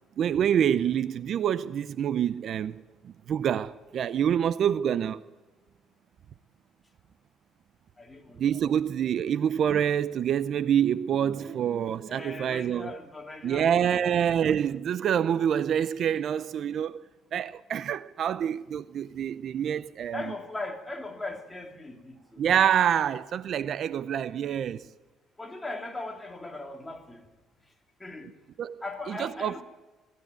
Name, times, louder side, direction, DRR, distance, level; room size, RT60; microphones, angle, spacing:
voice 1, 0.2-5.2 8.4-13.0 13.4-17.0 17.3-20.2 22.4-24.9 28.6-28.8 29.2-29.6, right 9 dB, 55° right, 0.6 m, -26 dB
voice 2, 8.0-8.6 11.4-11.5 12.1-14.1 20.1-22.4 25.4-27.3 28.0-28.3 28.8-29.6, left 2 dB, 15° left, 2.9 m, -39 dB
20.0 x 15.0 x 9.3 m
cardioid pair, 105°, 0 cm